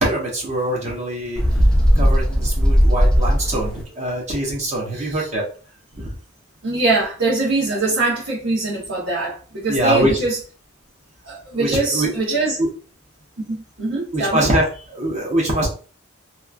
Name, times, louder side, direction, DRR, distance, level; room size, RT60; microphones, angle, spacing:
voice 1, 0.0-1.4 1.9-5.4 5.9-6.1 9.7-10.1 11.5-12.1 12.6-12.7 14.1-15.7, right 1 dB, 35° right, 0.8 m, -23 dB
Bird, 1.4-3.8, equal, 5° left, 0.4 m, -16 dB
voice 2, 4.9-5.3 6.6-10.4 11.2-12.6 13.5-14.5, right 3 dB, 70° right, 1.1 m, -22 dB
2.9 x 2.3 x 2.4 m
head